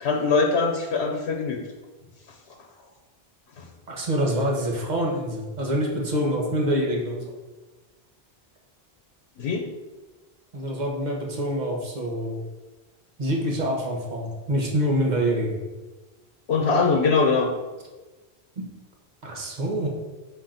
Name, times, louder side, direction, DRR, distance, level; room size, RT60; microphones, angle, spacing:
voice 1, 0.0-1.6 3.6-3.7 9.4-9.7 16.5-17.5, left 4 dB, 90° left, 2 dB, 1.1 m, -22 dB
voice 2, 3.9-7.3 10.5-12.4 13.2-15.6 18.6-18.7 19.2-19.9, equal, 45° right, -1 dB, 1.3 m, -26 dB
6.9 x 5.8 x 3.9 m, 1.2 s
omnidirectional pair, 1.1 m